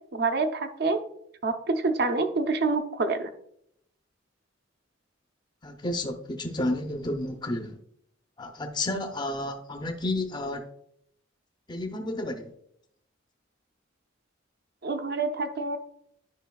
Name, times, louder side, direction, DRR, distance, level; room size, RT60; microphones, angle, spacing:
voice 1, 0.1-1.0 1.4-3.3 14.8-15.8, right 3 dB, 55° right, 7 dB, 0.7 m, -27 dB
voice 2, 5.6-7.8 8.4-10.7 11.7-12.5, left 1 dB, 20° left, 5 dB, 0.5 m, -31 dB
10.5 x 5.1 x 2.3 m, 0.71 s
head